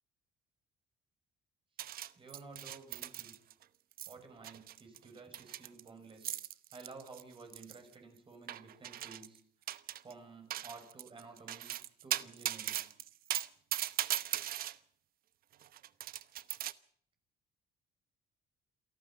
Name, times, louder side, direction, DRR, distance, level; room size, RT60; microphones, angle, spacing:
sound 1, 1.8-3.6 3.9-4.1 4.4-7.9 8.5-9.4 9.7-10.1 10.5-14.7 15.5-16.7, right 12 dB, 60° right, 0.9 m, -39 dB
voice 1, 2.2-3.3 4.1-6.4 6.7-9.4 10.0-11.7 12.0-12.8, right 4 dB, 30° right, 5 dB, 6.4 m, -53 dB
28.0 x 12.5 x 9.0 m, 0.62 s
cardioid pair, 110°, 17 cm